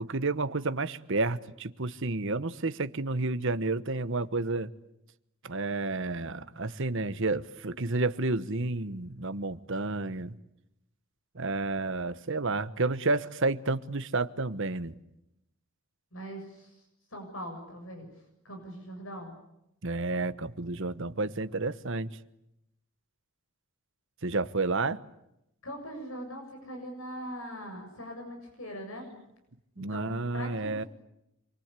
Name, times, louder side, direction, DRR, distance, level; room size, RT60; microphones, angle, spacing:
voice 1, 0.0-4.7 5.4-10.3 11.3-14.9 19.8-22.2 24.2-25.0 29.8-30.8, right 3 dB, 60° right, 1.2 m, -30 dB
voice 2, 16.1-16.8 17.1-18.1 18.4-19.3 25.6-29.1 29.8-30.9, equal, 65° left, 7.1 m, -41 dB
28.0 x 23.5 x 8.4 m
head